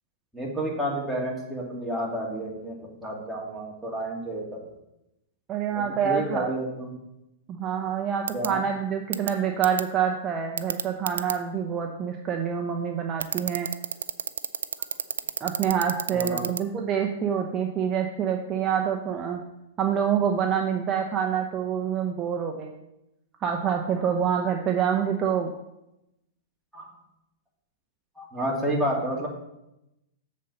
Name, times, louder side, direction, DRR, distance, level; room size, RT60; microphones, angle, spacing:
voice 1, 0.3-4.7 5.7-6.9 8.3-8.6 16.1-16.5 24.0-24.1 26.7-26.9 28.2-29.3, right 1 dB, ahead, -4 dB, 2.4 m, -30 dB
voice 2, 5.5-6.5 7.5-13.7 15.4-19.4 19.8-22.8 23.4-25.5, right 8 dB, 30° right, 2 dB, 0.8 m, -26 dB
sound 1, 8.3-8.5 9.1-9.3 9.6-9.8 10.6-11.3 13.2-16.6, right 7 dB, 90° right, 0.4 m, -28 dB
7.3 x 4.2 x 6.6 m, 0.88 s
hypercardioid pair, 125°, 0 cm